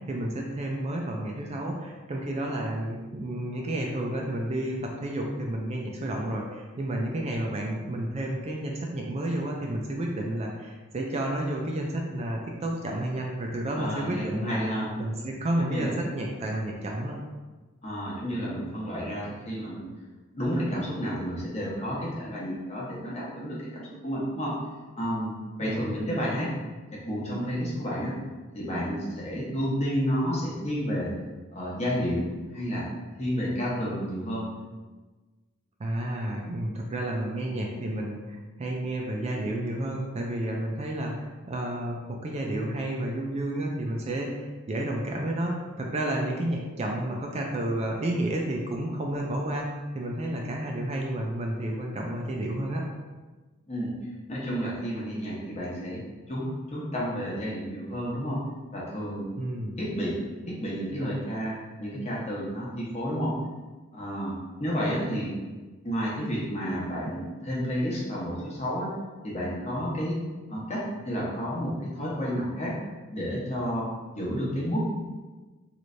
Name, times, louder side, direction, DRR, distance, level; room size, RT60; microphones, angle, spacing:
voice 1, 0.1-14.6 15.0-17.2 25.6-25.9 35.8-49.7 49.9-52.9 59.4-59.8, right 1 dB, 30° right, 0 dB, 0.4 m, -31 dB
voice 2, 13.7-14.9 15.6-15.9 17.8-19.9 20.3-24.6 25.0-25.3 25.6-26.5 26.9-28.2 28.5-31.1 31.5-32.9 33.2-34.5 53.7-53.9 54.3-56.0 56.3-56.4 56.7-58.4 58.7-59.3 59.8-60.2 60.5-63.3 63.9-65.4 65.8-68.9 69.2-70.2 70.5-72.8 73.1-74.9, equal, 30° left, -6 dB, 0.9 m, -31 dB
3.2 x 3.1 x 2.6 m, 1.3 s
head